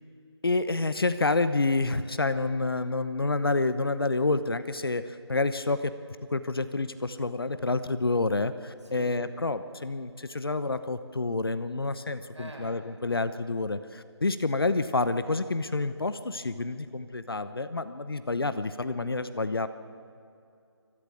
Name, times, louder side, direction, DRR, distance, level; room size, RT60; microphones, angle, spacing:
voice 1, 0.4-5.9 6.3-19.7, left 3 dB, 55° left, 12 dB, 0.9 m, -28 dB
voice 2, 8.8-9.2 12.3-12.7, right 2 dB, 90° right, 1 dB, 6.3 m, -44 dB
24.0 x 14.5 x 8.5 m, 2.5 s
figure-of-eight pair, 175°, 15 cm